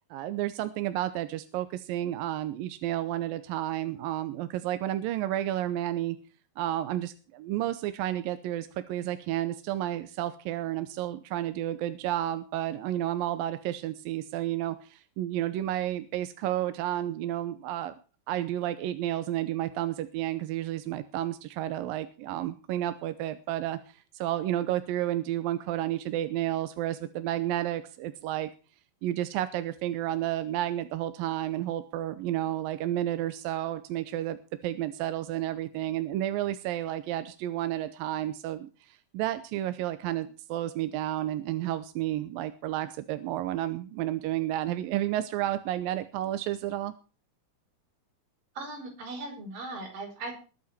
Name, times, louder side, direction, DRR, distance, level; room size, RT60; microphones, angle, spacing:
voice 1, 0.1-6.2 6.6-18.0 18.3-28.5 29.0-34.4 34.6-46.9, right 13 dB, 75° right, 11 dB, 2.4 m, -31 dB
voice 2, 48.6-50.3, right 2 dB, 60° right, 2 dB, 6.3 m, -38 dB
21.0 x 8.8 x 4.3 m, 0.36 s
omnidirectional pair, 4.5 m